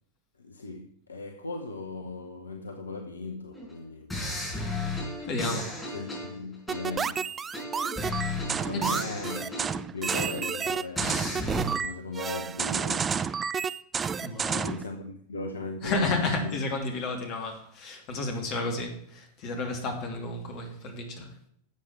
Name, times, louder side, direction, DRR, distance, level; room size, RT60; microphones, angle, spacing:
voice 1, 0.4-4.2 5.9-7.3 8.5-9.5 9.9-11.5 11.8-13.4 14.5-16.6, left 3 dB, 75° left, 0.9 m, -38 dB
sound 1, 3.5-3.7 4.1-7.1 7.5-10.6 11.0-11.6, left 2 dB, 10° left, 5.3 m, -34 dB
voice 2, 5.3-5.7 8.7-9.1 14.2-14.7 15.8-21.3, left 2 dB, 40° left, 2.7 m, -32 dB
sound 2, 6.7-14.9, right 6 dB, 20° right, 0.4 m, -30 dB
12.0 x 7.5 x 4.7 m
figure-of-eight pair, 90°, 0 cm